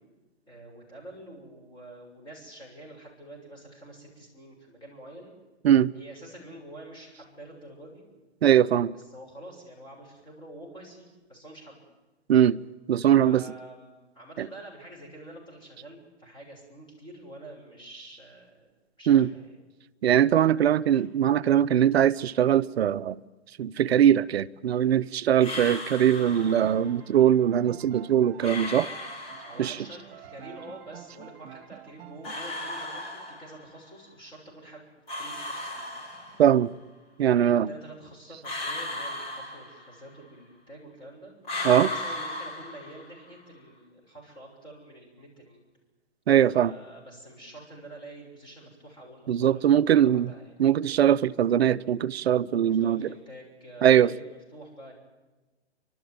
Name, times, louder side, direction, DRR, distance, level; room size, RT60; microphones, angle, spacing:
voice 1, 0.5-5.3 5.9-8.1 8.9-11.8 13.2-18.7 19.0-19.6 20.6-21.0 29.4-34.8 35.2-35.9 37.3-41.3 41.7-45.6 46.5-50.5 52.7-54.9, right 1 dB, 15° left, 6.7 m, -47 dB
voice 2, 8.4-8.9 12.3-12.6 12.9-13.4 14.4-14.5 19.1-19.3 20.0-23.2 23.6-28.9 29.6-29.8 36.4-36.7 37.2-37.7 41.6-41.9 46.3-46.7 49.3-50.3 50.6-53.1 53.8-54.1, right 10 dB, 65° right, 0.6 m, -21 dB
sound 1, 25.4-26.9 28.4-29.9 32.2-33.8 35.1-36.6 38.4-40.2 41.4-43.3, left 1 dB, 40° left, 5.6 m, -36 dB
sound 2, 26.4-32.3, right 11 dB, 35° right, 2.0 m, -47 dB
30.0 x 12.5 x 9.3 m
hypercardioid pair, 135°, 34 cm